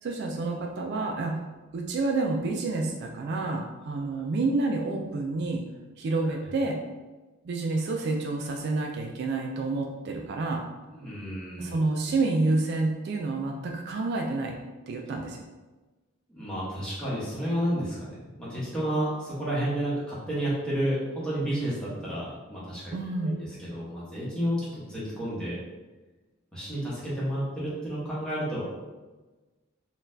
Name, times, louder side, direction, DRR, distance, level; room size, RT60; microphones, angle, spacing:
voice 1, 0.0-1.4 1.7-5.6 6.0-6.8 7.4-10.6 11.6-14.6 14.9-15.4 22.9-23.4, right 3 dB, 50° right, 2 dB, 0.3 m, -29 dB
voice 2, 10.9-12.1 16.3-25.6 26.5-28.6, equal, 5° left, -9 dB, 1.0 m, -31 dB
3.9 x 2.3 x 2.6 m, 1.2 s
head